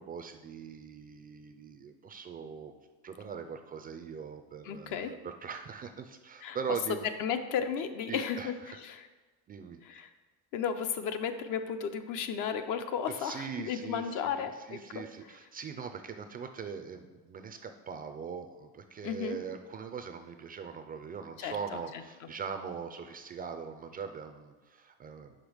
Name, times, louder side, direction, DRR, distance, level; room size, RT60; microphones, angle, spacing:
voice 1, 0.0-2.7 3.0-7.1 8.1-8.8 9.5-10.0 13.2-25.3, right 6 dB, 25° right, 7 dB, 0.4 m, -41 dB
voice 2, 4.6-5.1 6.4-6.6 7.2-9.1 9.8-10.1 10.5-15.3 19.0-19.4 21.4-22.0, left 7 dB, 60° left, 8 dB, 0.7 m, -34 dB
5.6 x 5.2 x 6.3 m, 1.2 s
cardioid pair, 130°, 36 cm